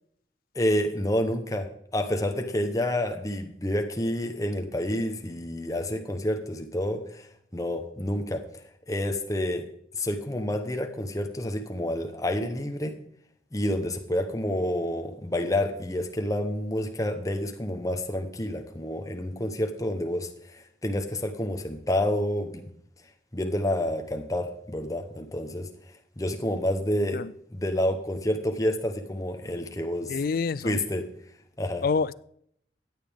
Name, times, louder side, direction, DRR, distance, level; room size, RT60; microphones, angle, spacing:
voice 1, 0.5-8.4 8.9-9.7 10.0-13.0 13.5-22.7 23.3-25.7 26.2-27.2 27.5-30.2 30.6-31.1 31.6-31.8, left 1 dB, 20° left, 0.9 m, -29 dB
voice 2, 30.1-30.8 31.8-32.1, left 5 dB, 50° left, 0.3 m, -27 dB
14.0 x 9.2 x 3.6 m
head